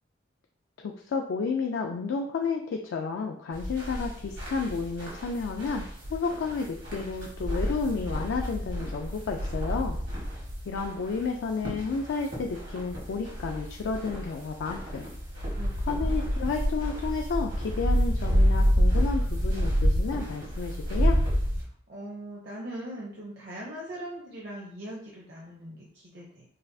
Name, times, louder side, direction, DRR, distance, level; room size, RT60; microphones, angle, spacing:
voice 1, 0.8-10.0 10.7-15.1 15.9-21.2, left 4 dB, 70° left, 2 dB, 0.3 m, -31 dB
sound 1, 3.5-21.6, equal, 75° right, 1.4 m, -29 dB
voice 2, 15.5-16.1 21.6-26.4, right 1 dB, 55° right, -4 dB, 0.7 m, -41 dB
4.0 x 2.4 x 2.6 m, 0.63 s
head